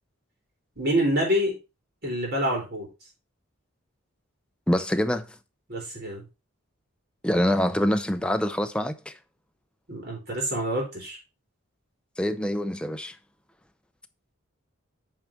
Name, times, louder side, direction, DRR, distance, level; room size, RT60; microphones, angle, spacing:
voice 1, 0.7-1.5 2.0-2.9 5.7-6.2 9.9-11.2, equal, 50° right, 3.6 m, -26 dB
voice 2, 4.7-5.3 7.2-9.1 12.2-13.2, equal, 5° left, 0.5 m, -25 dB
8.7 x 5.0 x 4.4 m
head